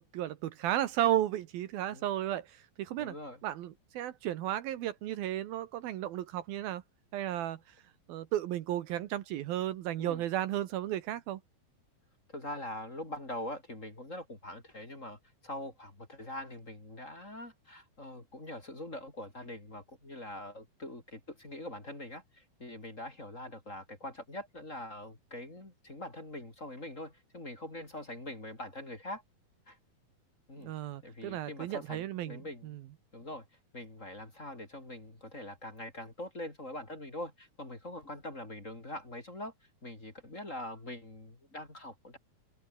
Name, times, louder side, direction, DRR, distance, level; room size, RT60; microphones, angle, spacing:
voice 1, 0.0-3.1 3.4-6.8 7.1-7.6 8.1-11.4 30.6-32.8, right 12 dB, 70° right, 2.8 m, -34 dB
voice 2, 3.0-3.4 10.0-10.2 12.3-29.2 29.7-29.8 30.5-30.7 31.0-32.7 33.1-33.4 33.7-39.5 39.8-42.2, left 1 dB, 20° left, 3.9 m, -43 dB
omnidirectional pair, 4.5 m